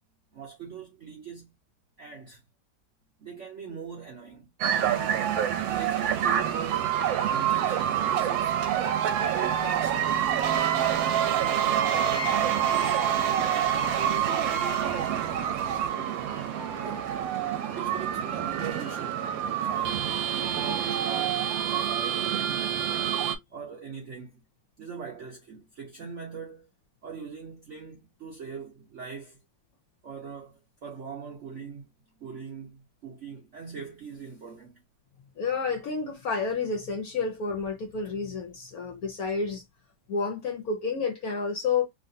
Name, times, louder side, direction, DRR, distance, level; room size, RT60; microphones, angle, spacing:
voice 1, 0.3-1.5 2.0-2.4 3.2-4.5 5.5-8.6 9.0-10.7 11.2-16.4 16.8-17.1 17.7-21.4 21.7-23.1 23.5-24.4 24.8-26.7 27.0-29.4 30.0-31.9 32.2-34.8, right 6 dB, 65° right, 0.7 m, -41 dB
sound 1, 4.6-23.4, right 9 dB, 90° right, 1.4 m, -27 dB
voice 2, 35.4-39.6 40.1-41.9, left 5 dB, 70° left, 0.9 m, -30 dB
3.1 x 2.5 x 2.6 m
omnidirectional pair, 2.1 m